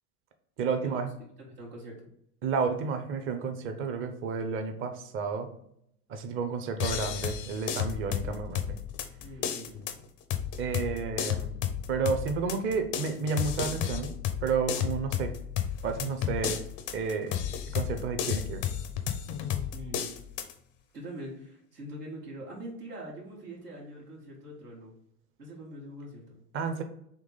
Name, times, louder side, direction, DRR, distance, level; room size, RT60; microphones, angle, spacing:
voice 1, 0.6-1.1 2.4-5.5 6.1-8.8 10.6-11.5 11.9-14.1 14.4-15.3 15.8-16.6 16.9-17.4 17.7-18.6 26.5-26.8, right 5 dB, 30° right, 7 dB, 0.6 m, -31 dB
voice 2, 1.4-2.0 8.2-8.4 9.2-10.0 19.7-20.1 20.9-24.9 25.4-26.4, right 1 dB, 90° right, -3 dB, 1.5 m, -43 dB
sound 1, 6.8-20.5, left 9 dB, 30° left, 0.4 m, -33 dB
3.6 x 2.9 x 3.9 m, 0.73 s
hypercardioid pair, 95°, 46 cm